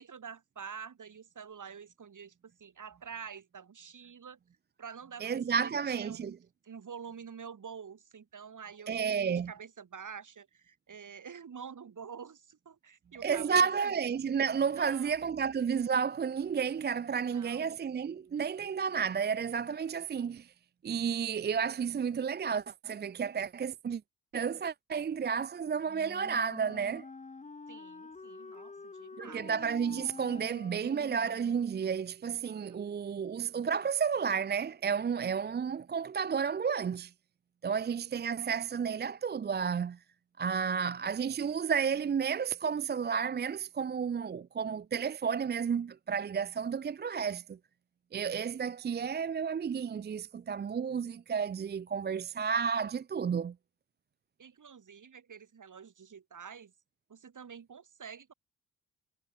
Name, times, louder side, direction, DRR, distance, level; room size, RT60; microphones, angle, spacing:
voice 1, 0.0-4.4 4.8-6.4 6.6-13.9 14.7-15.1 17.2-17.6 27.7-29.5 32.5-32.6 54.4-56.7 57.1-58.3, right 6 dB, 50° right, 5.6 m, -47 dB
voice 2, 5.2-6.4 8.9-9.5 13.2-20.5 20.8-24.0 24.3-27.0 29.2-37.1 37.6-40.0 40.4-47.6 48.1-53.5, right 6 dB, 25° right, 0.5 m, -32 dB
Wind instrument woodwind instrument, 25.9-31.8, left 4 dB, 20° left, 1.0 m, -48 dB
hypercardioid pair, 50°, 38 cm